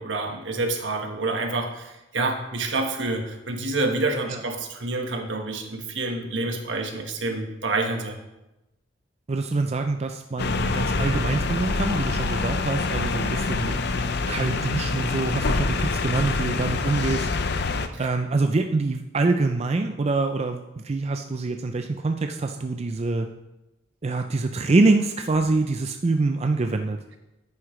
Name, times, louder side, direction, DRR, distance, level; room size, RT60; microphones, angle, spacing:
voice 1, 0.0-8.2 17.9-18.1, right 2 dB, 75° right, 3 dB, 1.3 m, -28 dB
voice 2, 9.3-13.8 14.3-17.3 18.0-23.3 24.0-27.0, right 3 dB, 35° right, 6 dB, 0.4 m, -25 dB
sound 1, 10.4-17.9, left 3 dB, 60° left, 0.6 m, -26 dB
9.7 x 9.6 x 3.2 m, 0.96 s
head